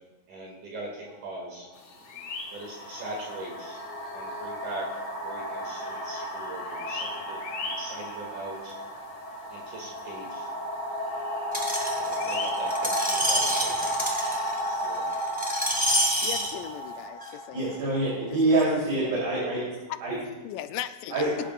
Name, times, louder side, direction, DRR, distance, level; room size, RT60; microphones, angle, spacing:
voice 1, 0.3-0.9 1.2-1.7 2.5-3.8 4.1-4.8 5.2-8.7 9.5-10.5 12.0-13.9 14.6-15.0, right 2 dB, 65° right, -2 dB, 3.4 m, -41 dB
sound 1, 1.1-1.3 2.2-18.9, right 1 dB, 35° left, 2.2 m, -33 dB
sound 2, 1.7-17.1, left 4 dB, 60° left, 3.1 m, -44 dB
Screech, 11.5-16.5 17.2-17.3, equal, 10° right, 0.5 m, -28 dB
voice 2, 16.2-17.6 18.8-19.0 19.9-20.0 20.4-21.2, left 12 dB, 80° left, 10 dB, 2.1 m, -37 dB
voice 3, 17.5-19.7 20.0-20.2 21.1-21.3, right 2 dB, 85° right, -6 dB, 4.9 m, -25 dB
22.0 x 10.0 x 2.4 m, 1.1 s
omnidirectional pair, 3.9 m